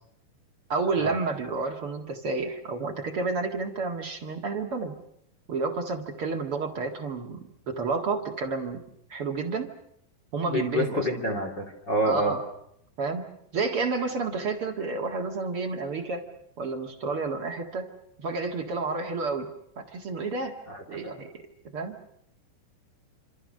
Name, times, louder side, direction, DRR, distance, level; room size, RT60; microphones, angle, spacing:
voice 1, 0.7-4.9 5.5-7.4 7.7-8.8 9.1-9.7 10.3-11.1 12.0-12.4 13.0-13.2 13.5-16.3 16.6-17.9 18.2-19.5 19.8-20.6 20.9-21.4 21.7-22.0, right 4 dB, 50° right, 4 dB, 1.6 m, -30 dB
voice 2, 10.4-12.3 20.7-20.8 21.0-21.1, equal, 25° left, 2 dB, 3.4 m, -27 dB
28.0 x 26.5 x 6.5 m, 0.73 s
omnidirectional pair, 5.2 m